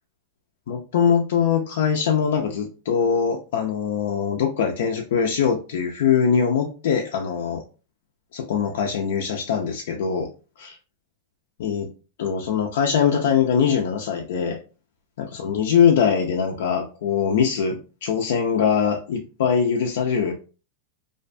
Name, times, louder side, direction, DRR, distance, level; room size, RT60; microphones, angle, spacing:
voice 1, 0.7-7.6 8.3-10.3 10.6-10.8 11.6-11.9 12.2-14.6 15.2-20.3, left 7 dB, 65° left, 2 dB, 0.4 m, -22 dB
2.4 x 2.2 x 2.4 m, 0.33 s
supercardioid pair, 165°, 0 cm